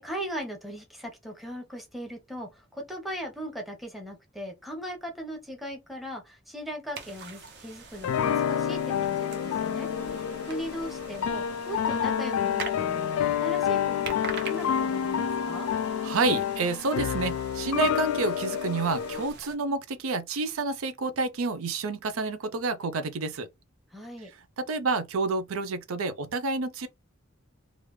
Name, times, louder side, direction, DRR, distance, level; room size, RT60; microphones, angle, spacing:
voice 1, 0.0-15.7 23.9-24.3, equal, ahead, 0.9 m, -39 dB
sound 1, 6.9-19.6, right 5 dB, 55° right, 0.8 m, -44 dB
sound 2, 8.0-19.3, left 8 dB, 85° left, 0.3 m, -28 dB
voice 2, 16.0-23.5 24.6-26.9, right 3 dB, 80° right, 0.5 m, -29 dB
3.2 x 2.4 x 3.1 m
head